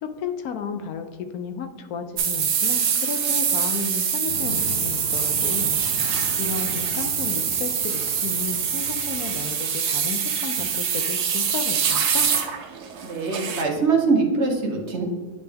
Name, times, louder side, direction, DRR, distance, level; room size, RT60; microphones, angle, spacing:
voice 1, 0.0-5.8 6.4-12.3, left 5 dB, 70° left, 7 dB, 1.0 m, -33 dB
sound 1, 2.2-13.6, right 7 dB, 80° right, 1.3 m, -24 dB
sound 2, 4.3-9.4, left 2 dB, 55° left, 0.8 m, -38 dB
voice 2, 13.0-15.0, right 4 dB, 50° right, 1 dB, 1.1 m, -22 dB
9.7 x 3.3 x 3.4 m, 1.4 s
omnidirectional pair, 1.7 m